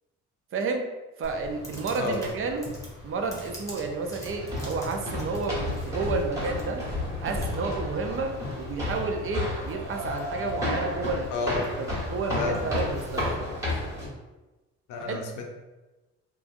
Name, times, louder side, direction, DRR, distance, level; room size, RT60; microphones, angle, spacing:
voice 1, 0.5-0.9 1.2-2.7 3.0-6.8 7.2-11.2 11.8-13.5 15.1-15.2, right 4 dB, 45° right, 4 dB, 0.5 m, -31 dB
Computer keyboard, 1.2-13.2, left 1 dB, 10° left, 0.8 m, -44 dB
sound 1, 4.2-14.1, left 1 dB, 10° right, 1.2 m, -32 dB
voice 2, 11.3-11.7 12.3-12.6 14.9-15.5, left 3 dB, 85° left, 2 dB, 0.6 m, -30 dB
3.0 x 2.3 x 2.5 m, 1.1 s
cardioid pair, 90°, 30 cm